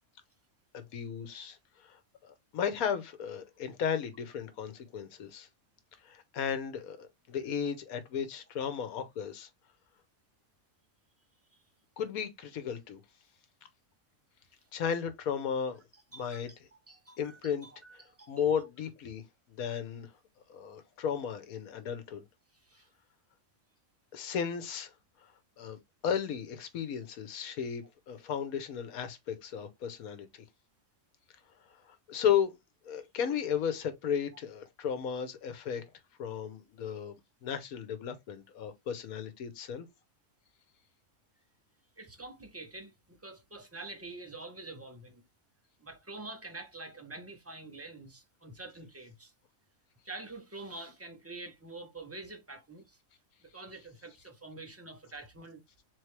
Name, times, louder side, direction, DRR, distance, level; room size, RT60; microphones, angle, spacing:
voice 1, 0.7-1.6 1.9-5.5 6.0-9.5 12.0-13.0 14.7-15.8 16.2-16.5 17.2-17.7 18.3-19.2 19.5-20.1 20.5-22.2 24.1-24.9 25.6-30.3 32.1-32.5 32.8-35.8 36.2-39.9, left 8 dB, 85° left, 1.3 m, -34 dB
voice 2, 16.1-16.6 16.9-18.5 22.5-22.9 42.0-45.2 45.8-49.3 50.0-53.0 53.4-55.6, right 2 dB, 20° right, 0.4 m, -46 dB
4.1 x 3.1 x 3.2 m
omnidirectional pair, 1.5 m